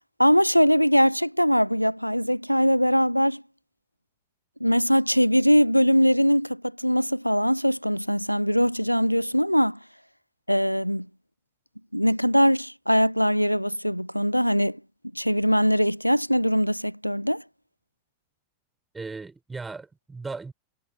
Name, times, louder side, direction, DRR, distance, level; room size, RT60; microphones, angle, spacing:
voice 1, 0.2-3.4 4.6-9.8 10.5-11.1 11.9-14.8 15.1-17.4, equal, 90° left, 0.4 m, -21 dB
voice 2, 18.9-20.5, right 4 dB, 10° right, 4.8 m, -37 dB
figure-of-eight pair, 90°, 0 cm